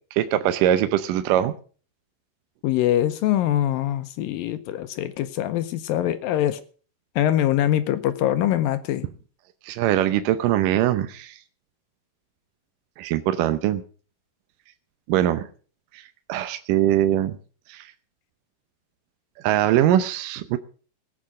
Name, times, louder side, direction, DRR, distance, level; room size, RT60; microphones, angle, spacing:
voice 1, 0.1-1.5 9.6-11.4 13.0-13.8 15.1-15.5 15.9-16.0 16.3-17.4 17.7-17.8 19.4-20.6, right 12 dB, 75° right, 10 dB, 2.1 m, -22 dB
voice 2, 2.6-6.6 7.2-9.1, left 12 dB, 75° left, 11 dB, 2.3 m, -23 dB
17.5 x 8.6 x 6.3 m, 0.40 s
omnidirectional pair, 4.4 m